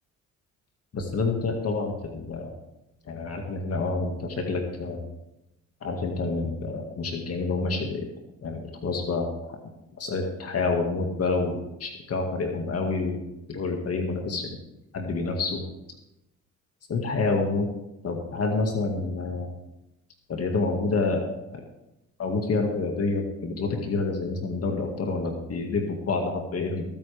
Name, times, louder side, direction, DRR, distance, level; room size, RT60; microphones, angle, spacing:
voice 1, 0.9-2.5 3.1-5.0 5.8-8.1 8.4-9.3 10.0-13.2 13.5-14.4 14.9-15.6 16.9-17.7 18.0-19.5 20.3-21.2 22.2-26.8, left 3 dB, 55° left, 2 dB, 2.1 m, -28 dB
22.5 x 8.8 x 3.5 m, 0.92 s
cardioid pair, 90°, 30 cm